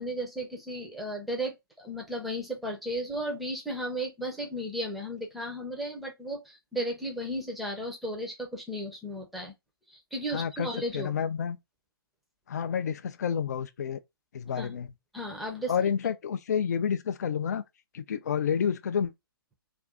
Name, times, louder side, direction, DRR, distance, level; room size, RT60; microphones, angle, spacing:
voice 1, 0.0-9.5 9.9-11.1 14.6-14.7 15.1-15.7, equal, ahead, 0.6 m, -34 dB
voice 2, 10.3-10.7 10.9-11.6 12.5-14.0 14.3-14.9 15.7-17.6 17.9-19.1, left 7 dB, 45° left, 0.4 m, -29 dB
2.5 x 2.5 x 3.4 m
figure-of-eight pair, 130°, 12 cm